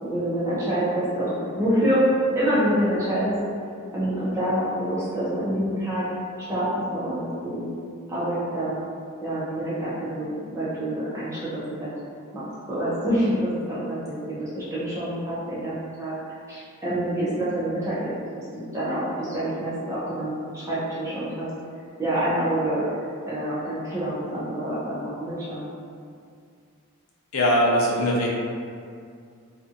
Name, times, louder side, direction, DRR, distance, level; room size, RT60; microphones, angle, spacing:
voice 1, 0.0-2.0 2.3-3.3 3.9-6.1 6.5-7.7 8.1-8.8 9.2-11.9 12.3-16.1 16.5-18.1 18.5-21.5 22.0-22.8 23.2-25.6, right 1 dB, 15° right, -11 dB, 0.5 m, -27 dB
voice 2, 27.3-28.3, equal, 80° left, -3 dB, 0.5 m, -21 dB
2.6 x 2.3 x 2.5 m, 2.3 s
head